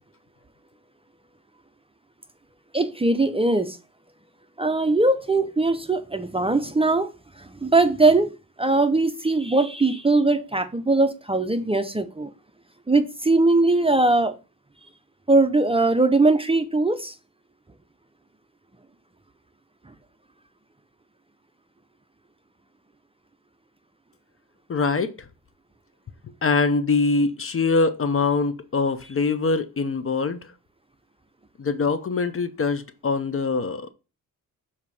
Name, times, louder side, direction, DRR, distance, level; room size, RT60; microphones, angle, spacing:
voice 1, 2.7-3.8 4.6-7.1 7.4-8.3 8.6-12.3 12.9-14.4 15.3-17.1, right 2 dB, 15° right, 0.6 m, -20 dB
voice 2, 24.7-25.1 26.4-30.5 31.6-33.9, left 4 dB, 40° left, 0.6 m, -23 dB
7.2 x 2.8 x 4.7 m
cardioid pair, 80°, 35 cm